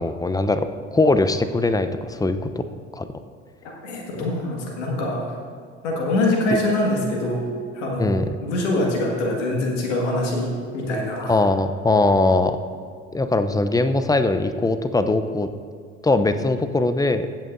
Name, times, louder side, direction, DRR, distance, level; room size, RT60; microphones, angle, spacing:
voice 1, 0.0-2.6 2.9-3.1 8.0-8.2 11.3-12.6 13.1-15.5 16.0-17.3, left 2 dB, 10° left, 10 dB, 0.6 m, -21 dB
voice 2, 3.6-5.3 5.8-7.4 7.7-8.2 8.4-11.3, left 1 dB, 80° left, -1 dB, 1.8 m, -24 dB
16.0 x 8.6 x 2.6 m, 2.2 s
hypercardioid pair, 60°, 36 cm